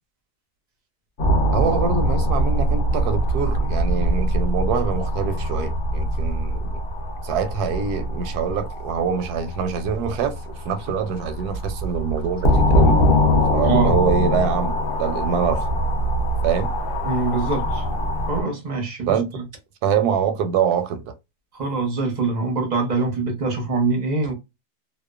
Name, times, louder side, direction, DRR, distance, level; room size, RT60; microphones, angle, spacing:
sound 1, 1.2-18.4, equal, 60° left, 0.5 m, -22 dB
voice 1, 1.5-6.8 7.2-13.0 13.5-14.7 15.0-15.6 16.4-16.7 19.1-19.3 19.8-21.0, right 7 dB, 80° right, 1.1 m, -24 dB
voice 2, 13.6-14.0 17.0-17.8 18.3-19.4 21.5-24.3, right 4 dB, 45° right, 0.5 m, -24 dB
2.8 x 2.1 x 2.3 m
omnidirectional pair, 1.7 m